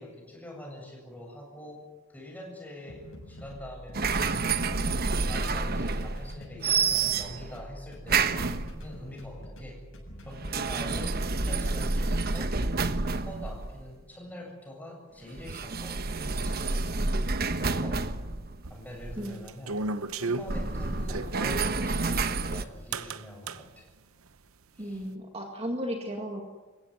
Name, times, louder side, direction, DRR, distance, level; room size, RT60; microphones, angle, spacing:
voice 1, 0.0-1.8 2.1-4.4 5.3-8.3 8.8-9.8 10.3-12.5 13.1-16.9 17.6-18.0 18.7-19.8 20.2-23.9 24.7-25.1, left 1 dB, 10° left, 0 dB, 7.8 m, -44 dB
sound 1, 2.9-10.9, equal, 65° left, 7.8 m, -46 dB
sound 2, 3.9-6.4 6.6-7.6 8.1-9.0 10.3-13.9 15.4-19.3 20.4-22.6, right 4 dB, 45° right, 1.1 m, -29 dB
sound 3, 18.6-21.6 22.9-23.6, right 3 dB, 85° right, 0.9 m, -34 dB
voice 2, 24.8-26.4, equal, 30° right, 2 dB, 2.1 m, -34 dB
28.0 x 16.0 x 9.6 m, 1.3 s
head